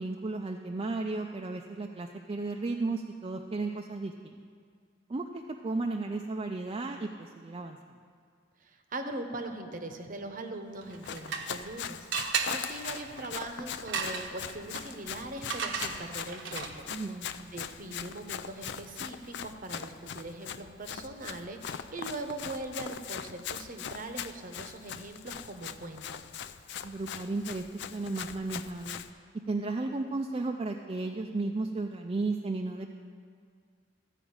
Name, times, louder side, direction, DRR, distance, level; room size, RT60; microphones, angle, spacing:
voice 1, 0.0-4.4 5.1-5.2 5.6-7.8 16.9-17.5 26.8-29.0 29.5-32.9, right 3 dB, 30° right, 3 dB, 0.4 m, -34 dB
voice 2, 8.6-16.9 17.5-26.2, right 2 dB, 45° right, 6 dB, 0.8 m, -41 dB
sound 1, 10.8-11.7 12.1-16.9, right 6 dB, 75° right, 0.9 m, -36 dB
Run, 10.9-29.1, left 8 dB, 65° left, 0.4 m, -41 dB
13.5 x 5.0 x 8.6 m, 2.1 s
head